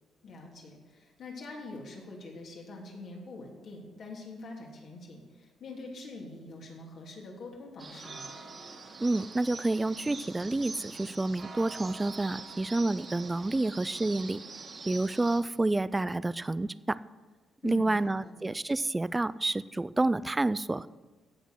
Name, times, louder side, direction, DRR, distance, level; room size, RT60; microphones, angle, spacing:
voice 1, 0.2-8.3 17.6-18.3, left 2 dB, 60° left, -1 dB, 3.1 m, -44 dB
sound 1, 7.8-15.4, right 4 dB, 40° right, 1.9 m, -44 dB
voice 2, 9.0-14.4 14.9-17.0 17.6-20.9, right 2 dB, 15° right, 17 dB, 0.4 m, -29 dB
16.5 x 6.2 x 6.4 m, 1.3 s
cardioid pair, 90°, 0 cm